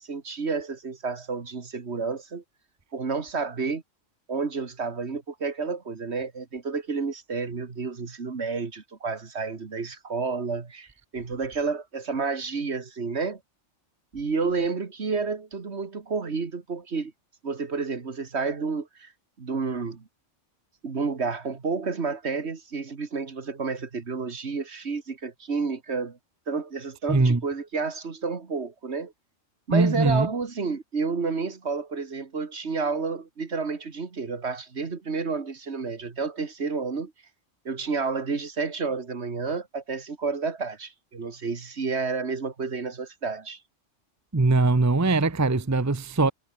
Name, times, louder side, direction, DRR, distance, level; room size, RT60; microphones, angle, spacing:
voice 1, 0.0-2.4 2.9-3.8 4.3-13.4 14.1-17.1 17.4-19.1 19.4-20.1 20.8-26.2 26.5-29.1 29.7-37.1 37.7-43.6, right 4 dB, 60° right, 2.1 m, -30 dB
voice 2, 27.1-27.4 29.7-30.3 44.3-46.3, right 3 dB, 15° right, 0.8 m, -21 dB
omnidirectional pair, 1.3 m